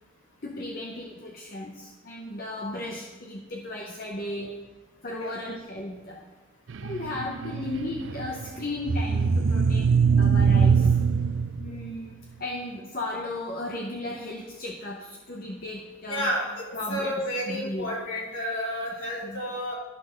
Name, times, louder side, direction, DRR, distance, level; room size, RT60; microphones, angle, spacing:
voice 1, 0.4-4.5 5.0-6.2 6.8-9.9 10.2-10.9 11.6-16.3 16.7-17.2 17.5-17.9 19.2-19.4, left 1 dB, 45° left, -1 dB, 0.8 m, -35 dB
sound 1, 6.7-11.9, right 5 dB, 70° right, 0.4 m, -23 dB
voice 2, 16.1-16.6 16.9-19.7, equal, 70° left, -5 dB, 3.2 m, -30 dB
11.0 x 4.0 x 6.4 m, 1.2 s
head